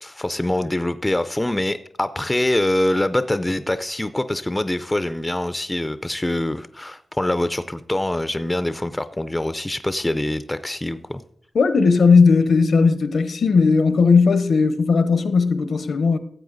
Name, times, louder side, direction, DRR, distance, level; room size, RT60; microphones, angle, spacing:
voice 1, 0.0-11.2, left 1 dB, 10° left, 0.4 m, -24 dB
voice 2, 11.5-16.2, left 4 dB, 75° left, 0.8 m, -16 dB
13.5 x 8.0 x 3.9 m
wide cardioid pair, 140°, 0 cm